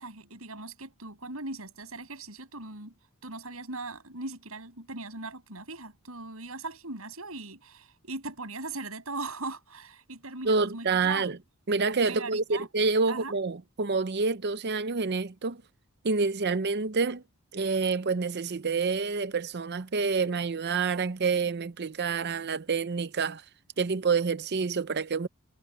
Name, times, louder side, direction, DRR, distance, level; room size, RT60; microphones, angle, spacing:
voice 1, 0.0-2.9 3.2-11.4 12.1-12.7 13.1-13.3, right 3 dB, 70° right, 7.8 m, -39 dB
voice 2, 10.4-11.4 11.7-15.6 16.0-17.2 17.5-23.4 23.8-25.3, right 4 dB, 50° right, 0.7 m, -28 dB
head